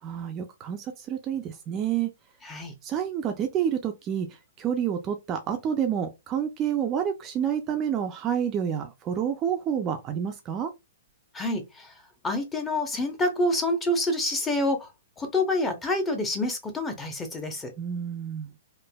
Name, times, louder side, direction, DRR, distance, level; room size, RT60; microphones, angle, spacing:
voice 1, 0.0-2.1 2.8-10.7 17.8-18.5, right 8 dB, 25° right, 0.4 m, -29 dB
voice 2, 2.4-2.7 11.3-11.9 12.2-14.9 15.2-17.7, left 1 dB, 10° left, 0.7 m, -27 dB
3.2 x 2.1 x 2.2 m
hypercardioid pair, 140°, 0 cm